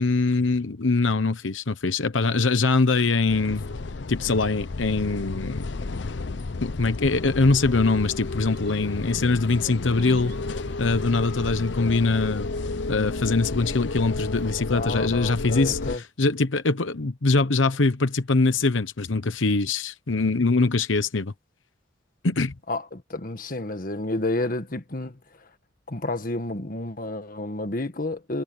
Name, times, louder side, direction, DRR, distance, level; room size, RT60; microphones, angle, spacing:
voice 1, 0.0-3.6 4.1-5.7 6.6-10.3 10.8-12.5 12.9-21.3 22.2-22.5, left 3 dB, 90° left, 1.0 m, -23 dB
sound 1, 3.3-16.0, left 3 dB, 65° left, 0.7 m, -32 dB
sound 2, 7.6-14.6, right 1 dB, 60° right, 6.8 m, -48 dB
voice 2, 14.7-16.0 22.7-25.5 25.9-28.4, left 2 dB, 45° left, 1.6 m, -30 dB
head